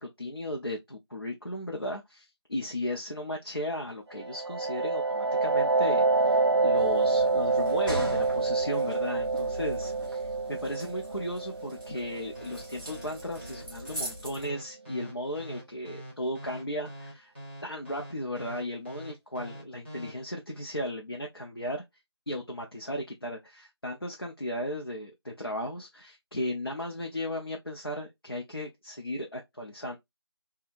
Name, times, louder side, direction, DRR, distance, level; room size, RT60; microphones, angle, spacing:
voice 1, 0.0-17.3 17.6-21.8 22.3-30.0, left 1 dB, 60° left, 0.8 m, -36 dB
sound 1, 4.2-13.6, right 3 dB, 80° right, 0.4 m, -27 dB
sound 2, 6.8-14.5, equal, ahead, 0.7 m, -41 dB
sound 3, 12.4-20.1, equal, 25° left, 1.1 m, -44 dB
3.5 x 2.3 x 2.5 m
figure-of-eight pair, 180°, 14 cm